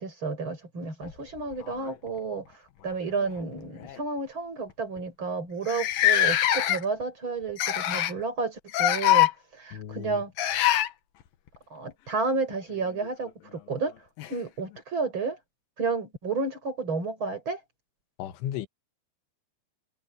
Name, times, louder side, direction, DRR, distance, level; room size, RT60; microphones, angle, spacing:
voice 1, 0.0-2.5 2.8-10.6 11.7-13.9 14.3-15.4 15.8-17.6, right 4 dB, 25° right, 5.9 m, -31 dB
sound 1, 1.0-2.2 3.2-3.4 3.8-4.0 4.7-4.8 5.0-5.1 5.7-7.0 7.6-8.2 8.7-9.3 10.4-10.9 13.0-13.1 14.2-14.3, left 13 dB, 65° left, 2.5 m, -23 dB
voice 2, 9.7-10.2 18.2-18.7, left 11 dB, 80° left, 3.8 m, -35 dB
omnidirectional pair, 5.4 m